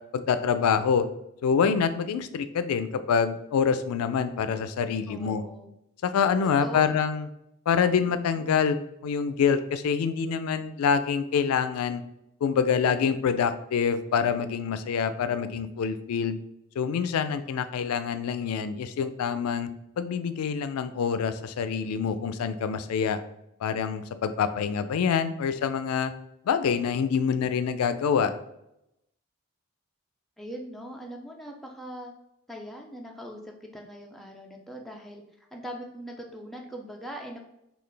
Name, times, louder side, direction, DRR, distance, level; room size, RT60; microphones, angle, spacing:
voice 1, 0.1-1.0 1.4-5.4 6.0-7.3 7.7-8.8 9.0-12.0 12.4-16.4 16.8-19.7 20.0-23.2 23.6-26.1 26.5-28.3, left 6 dB, 85° left, 11 dB, 0.3 m, -26 dB
voice 2, 5.1-5.8 6.6-7.0 30.4-32.1 32.5-37.4, equal, ahead, 0 dB, 0.4 m, -41 dB
3.9 x 2.4 x 3.2 m, 0.81 s
head